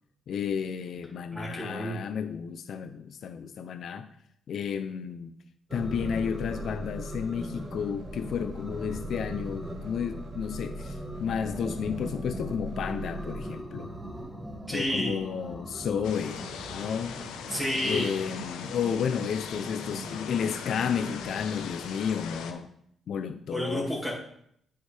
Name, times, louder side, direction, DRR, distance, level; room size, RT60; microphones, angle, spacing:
voice 1, 0.3-4.1 4.5-5.4 5.7-13.9 14.7-16.4 16.7-17.2 17.8-22.7 23.1-23.9, left 7 dB, 65° left, 9 dB, 0.5 m, -32 dB
voice 2, 1.3-2.0 14.7-15.2 17.5-18.2 23.5-24.1, equal, 5° left, -5 dB, 2.2 m, -30 dB
sound 1, 5.7-21.7, right 1 dB, 10° right, 1.2 m, -41 dB
sound 2, 5.7-13.6, right 1 dB, 70° right, 0.9 m, -42 dB
sound 3, 16.0-22.5, left 7 dB, 90° left, 0.8 m, -40 dB
9.3 x 5.5 x 3.4 m, 0.69 s
cardioid pair, 90°, 0 cm